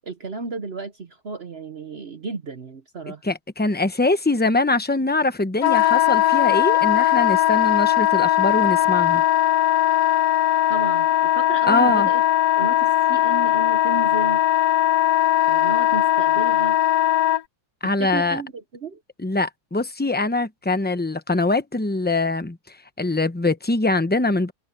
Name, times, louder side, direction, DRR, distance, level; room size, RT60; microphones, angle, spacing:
voice 1, 0.0-3.2 10.7-12.2 12.6-14.4 15.5-16.8 17.8-19.0, right 3 dB, 45° right, 1.1 m, -33 dB
voice 2, 3.2-9.2 11.7-12.1 17.8-18.4 19.2-22.6 23.0-24.5, left 2 dB, 10° left, 0.6 m, -23 dB
Wind instrument woodwind instrument, 5.6-17.4, left 13 dB, 90° left, 1.4 m, -19 dB
omnidirectional pair, 1.7 m